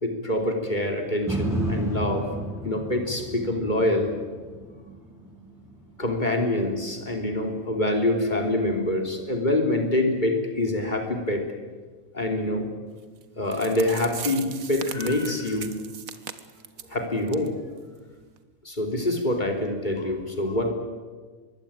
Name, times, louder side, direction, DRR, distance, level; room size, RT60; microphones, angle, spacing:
voice 1, 0.0-2.3 2.6-4.1 6.0-11.4 12.1-12.7 13.4-15.7 16.9-17.5 18.7-20.7, left 1 dB, 35° left, 3 dB, 3.7 m, -25 dB
sound 1, 1.3-9.4 9.9-10.0, right 1 dB, ahead, 6.3 m, -34 dB
sound 2, 13.2-13.3 13.5-16.9 17.3-17.5 17.8-17.9 18.4-18.5, right 7 dB, 80° right, 1.7 m, -38 dB
24.5 x 22.5 x 8.9 m, 1.5 s
omnidirectional pair, 1.4 m